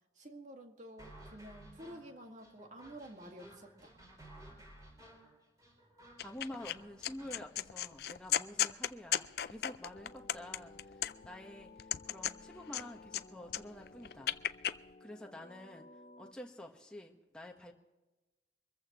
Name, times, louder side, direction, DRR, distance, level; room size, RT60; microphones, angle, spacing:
voice 1, 0.2-4.0, right 1 dB, 40° right, 3 dB, 1.9 m, -50 dB
sound 1, 1.0-7.4, right 1 dB, 20° right, 4.8 m, -56 dB
sound 2, 6.2-6.7 7.0-11.4 11.8-13.2 13.5-14.7, left 11 dB, 55° left, 0.4 m, -35 dB
voice 2, 6.2-14.4 15.0-15.9 16.2-17.7, left 1 dB, 5° left, 1 dB, 1.3 m, -49 dB
sound 3, 9.9-16.3, left 3 dB, 40° left, 0.8 m, -56 dB
24.5 x 14.5 x 3.1 m, 1.1 s
head